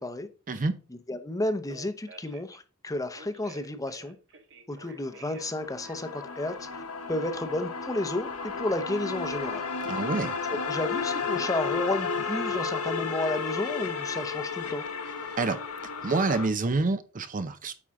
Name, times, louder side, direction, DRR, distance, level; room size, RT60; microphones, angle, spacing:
voice 1, 0.9-4.1 4.7-6.8 7.1-9.6 10.0-10.2 10.5-14.8, left 1 dB, 15° left, 0.7 m, -32 dB
Telephone, 1.4-2.6 3.1-5.5 5.8-6.2, right 3 dB, 60° right, 1.6 m, -50 dB
sound 1, 5.1-16.5, left 5 dB, 90° left, 1.1 m, -33 dB
voice 2, 9.9-10.4 15.4-15.6 16.0-17.7, right 3 dB, 35° right, 0.6 m, -27 dB
8.7 x 4.9 x 3.7 m
head